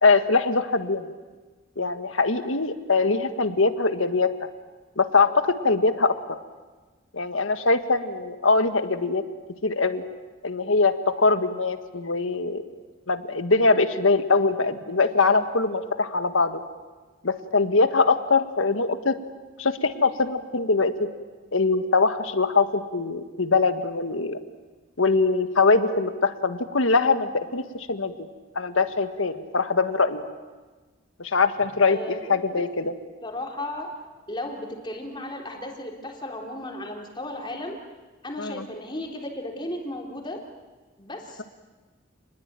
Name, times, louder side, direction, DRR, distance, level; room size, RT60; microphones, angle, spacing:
voice 1, 0.0-1.1 1.8-4.4 5.0-6.2 7.1-9.2 9.6-10.0 10.4-12.6 13.1-16.6 17.2-19.2 19.6-21.1 21.5-24.4 25.0-27.6 27.9-28.1 28.5-30.2 31.2-32.0 32.3-32.9 38.4-38.6, left 3 dB, 80° left, 9 dB, 1.7 m, -22 dB
voice 2, 31.9-32.7 33.2-33.9 34.3-37.8 38.2-40.4 41.0-41.4, left 1 dB, 25° left, 1 dB, 3.8 m, -35 dB
29.5 x 21.0 x 9.1 m, 1.3 s
head